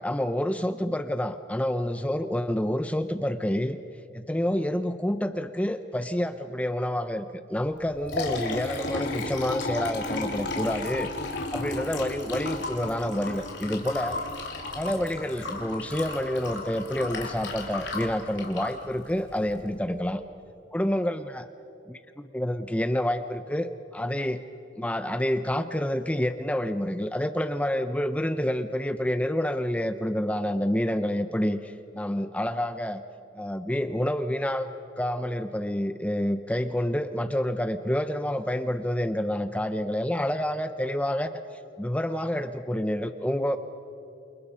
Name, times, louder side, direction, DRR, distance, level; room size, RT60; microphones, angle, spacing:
voice 1, 0.0-3.8 4.1-11.1 11.5-14.2 14.7-20.2 20.7-21.5 21.9-23.7 23.9-24.4 24.8-33.0 33.3-34.7 35.0-41.3 41.8-43.6, left 1 dB, 5° left, 10 dB, 0.6 m, -28 dB
Liquid, 7.8-19.7, left 2 dB, 60° left, 3.6 m, -34 dB
29.0 x 27.0 x 5.5 m, 2.7 s
head